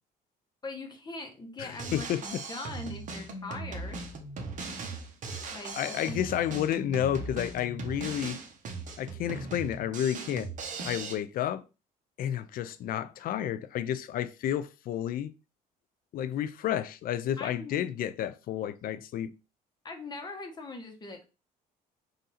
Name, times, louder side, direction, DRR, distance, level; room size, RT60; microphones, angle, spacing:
voice 1, 0.6-4.0 5.5-6.2 17.4-17.9 19.8-21.2, left 2 dB, 25° left, 1.0 m, -41 dB
voice 2, 1.6-2.4 5.8-8.4 9.0-10.5 10.8-11.6 12.2-15.3 16.1-19.3, left 11 dB, 60° left, 0.4 m, -31 dB
Drum kit, 1.7-11.2, right 3 dB, 50° right, 1.0 m, -39 dB
3.8 x 2.6 x 4.1 m
cardioid pair, 110°, 17 cm